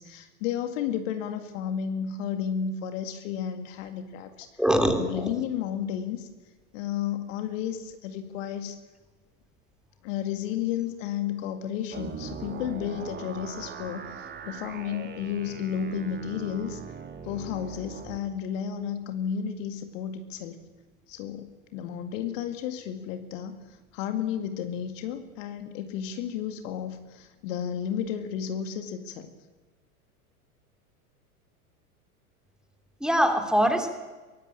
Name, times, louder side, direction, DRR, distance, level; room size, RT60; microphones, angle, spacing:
voice 1, 0.0-4.5 5.0-6.3 6.7-8.8 10.0-16.8 17.2-20.6 21.1-29.3, left 8 dB, 55° left, 8 dB, 2.1 m, -32 dB
voice 2, 4.6-5.3 33.0-33.9, equal, ahead, 6 dB, 3.1 m, -23 dB
sound 1, 11.9-18.2, right 6 dB, 25° right, 2.3 m, -40 dB
22.5 x 17.0 x 8.9 m, 1.3 s
hypercardioid pair, 90°, 45 cm